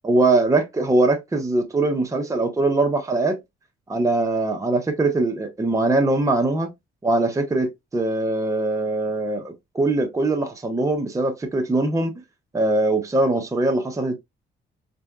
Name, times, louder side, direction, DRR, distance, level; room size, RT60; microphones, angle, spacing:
voice 1, 0.0-3.4 3.9-6.7 7.0-12.1 12.5-14.2, right 2 dB, 15° right, 0.7 m, -22 dB
4.2 x 2.6 x 2.3 m
cardioid pair, 90°, 20 cm